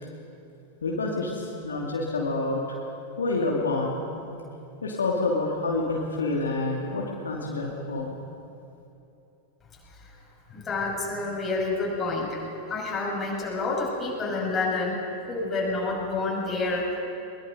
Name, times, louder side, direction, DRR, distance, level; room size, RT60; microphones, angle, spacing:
voice 1, 0.8-2.6 3.2-4.4 4.8-8.2, left 2 dB, 70° left, -2 dB, 2.6 m, -28 dB
voice 2, 10.5-12.4 12.7-15.0 15.3-16.9, left 3 dB, 20° left, -2 dB, 6.3 m, -28 dB
22.0 x 21.5 x 5.4 m, 2.8 s
figure-of-eight pair, 90°, 0 cm